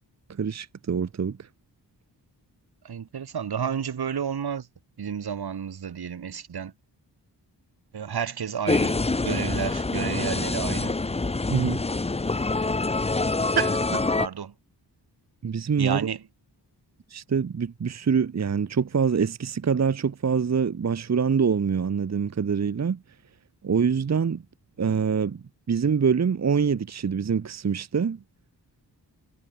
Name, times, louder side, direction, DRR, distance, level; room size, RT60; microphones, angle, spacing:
voice 1, 0.4-1.5 11.5-11.8 15.4-16.0 17.1-23.0 23.6-24.4 24.8-28.2, right 6 dB, 40° right, 0.9 m, -25 dB
voice 2, 2.8-4.7 5.0-6.7 7.9-9.0 9.2-10.9 13.5-14.5 15.8-16.2, right 7 dB, 65° right, 1.7 m, -31 dB
sound 1, 8.7-14.3, left 3 dB, 15° left, 0.7 m, -26 dB
wide cardioid pair, 110°, 42 cm